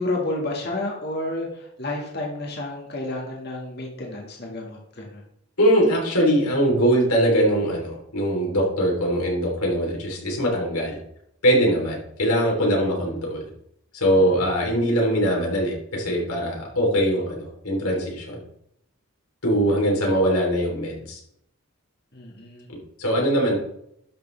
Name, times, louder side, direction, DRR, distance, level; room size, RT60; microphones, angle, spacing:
voice 1, 0.0-5.2 14.1-14.4 22.1-22.7, left 2 dB, 45° left, -1 dB, 1.9 m, -31 dB
voice 2, 5.6-11.0 11.4-13.4 13.9-18.4 19.4-21.2 22.7-23.6, equal, 85° left, -1 dB, 3.5 m, -22 dB
12.0 x 6.7 x 3.4 m, 0.75 s
head